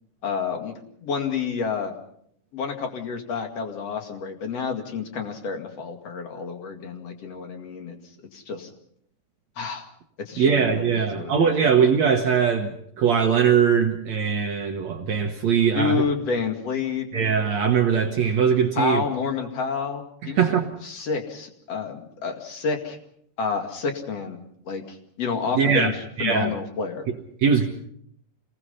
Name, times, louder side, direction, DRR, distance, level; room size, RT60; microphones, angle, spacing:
voice 1, 0.2-0.7 1.0-1.9 2.5-8.0 8.3-8.7 9.6-9.9 10.3-10.7 11.0-11.5 15.8-17.1 18.8-23.0 23.4-24.4 24.6-25.9 26.2-27.0, left 5 dB, 45° left, 2.6 m, -29 dB
voice 2, 10.4-16.0 17.1-19.0 20.2-20.7 25.5-26.6 27.4-27.7, right 7 dB, 75° right, 1.6 m, -21 dB
27.5 x 19.5 x 5.6 m
omnidirectional pair, 5.0 m